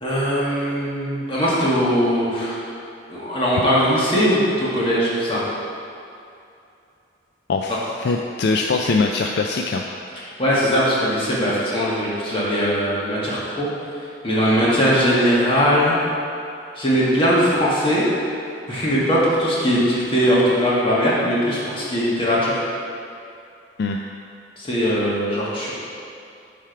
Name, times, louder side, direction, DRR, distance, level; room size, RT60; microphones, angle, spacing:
voice 1, 0.0-2.6 3.1-5.4 10.4-13.7 14.2-16.1 16.8-18.0 18.7-22.5 24.6-25.7, equal, 30° left, -7 dB, 1.7 m, -20 dB
voice 2, 7.5-9.8 23.8-24.0, left 3 dB, 60° left, 2 dB, 0.3 m, -22 dB
10.5 x 3.5 x 4.5 m, 2.6 s
head